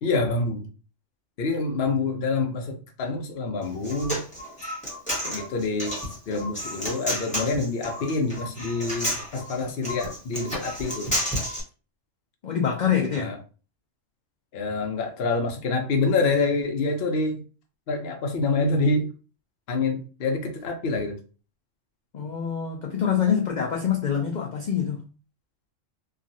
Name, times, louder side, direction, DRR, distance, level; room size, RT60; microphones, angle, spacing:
voice 1, 0.0-0.7 1.4-4.2 5.2-5.9 6.3-11.2 13.1-13.4 14.5-17.4 17.9-19.1 19.7-21.2, left 3 dB, 55° left, 0.8 m, -26 dB
Human voice, 3.6-11.6, equal, 5° left, 1.0 m, -31 dB
voice 2, 12.4-13.3 22.1-25.0, left 8 dB, 80° left, 0.4 m, -25 dB
3.0 x 2.4 x 2.6 m
omnidirectional pair, 1.3 m